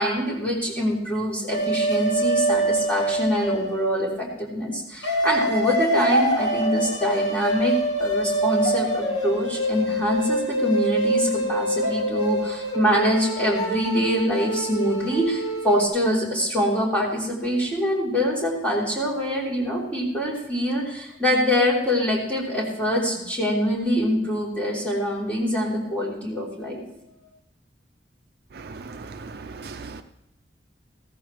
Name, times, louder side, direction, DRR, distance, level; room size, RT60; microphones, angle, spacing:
voice 1, 0.0-26.8, equal, 10° left, -4 dB, 3.4 m, -24 dB
sound 1, 1.5-4.0 5.0-15.9, right 1 dB, 80° left, 2.4 m, -25 dB
voice 2, 28.6-30.0, right 4 dB, 60° right, 8 dB, 0.5 m, -38 dB
15.0 x 14.0 x 3.2 m, 0.86 s
head